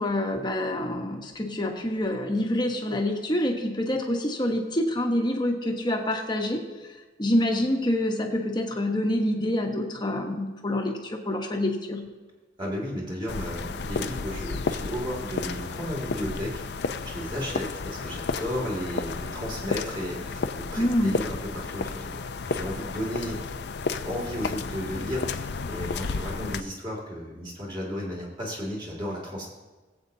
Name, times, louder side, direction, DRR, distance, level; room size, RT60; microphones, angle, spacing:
voice 1, 0.0-6.6 7.2-12.0 20.8-21.2, left 1 dB, 25° left, 2 dB, 1.1 m, -26 dB
voice 2, 12.6-16.8 17.0-23.4 24.1-29.5, equal, 25° right, -3 dB, 2.4 m, -34 dB
sound 1, 13.3-26.6, left 4 dB, 65° left, 0.5 m, -32 dB
20.5 x 8.0 x 2.7 m, 1.3 s
head